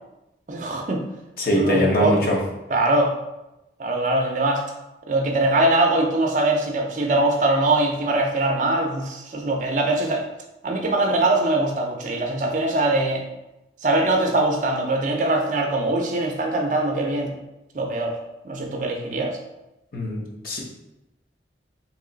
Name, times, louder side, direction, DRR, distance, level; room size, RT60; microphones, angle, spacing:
voice 1, 0.5-1.0 1.5-2.2 2.7-3.1 3.8-4.6 5.1-10.2 10.6-13.2 13.8-17.3 17.7-18.2 18.4-19.4, right 2 dB, 45° right, 2 dB, 0.5 m, -22 dB
voice 2, 1.4-2.4 19.9-20.6, equal, 55° left, -2 dB, 0.8 m, -22 dB
3.0 x 2.9 x 3.8 m, 0.94 s
head